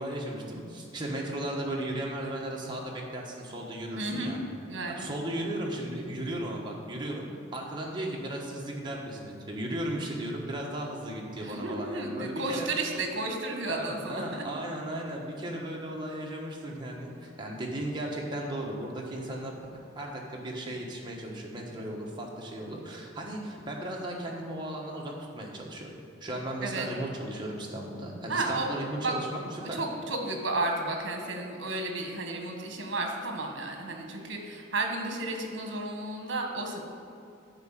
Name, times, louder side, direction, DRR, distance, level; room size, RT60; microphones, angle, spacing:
voice 1, 0.0-4.4 4.9-7.2 7.5-12.7 13.7-25.9 26.2-29.8, right 1 dB, 25° right, -2 dB, 1.3 m, -36 dB
voice 2, 4.0-4.3 4.7-5.1 11.4-14.4 26.6-26.9 28.3-29.1 29.7-36.8, right 2 dB, 65° right, 2 dB, 1.5 m, -33 dB
10.5 x 4.7 x 7.4 m, 2.5 s
head